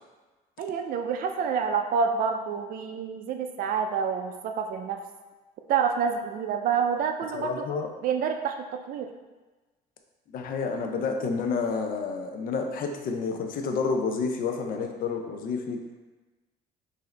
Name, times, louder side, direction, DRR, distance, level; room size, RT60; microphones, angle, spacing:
voice 1, 0.6-5.0 5.7-7.6 8.0-9.1, right 6 dB, 55° right, 4 dB, 0.4 m, -28 dB
voice 2, 7.3-7.9 10.3-15.8, left 4 dB, 55° left, 4 dB, 0.6 m, -29 dB
4.8 x 2.7 x 3.2 m, 1.2 s
cardioid pair, 110°, 17 cm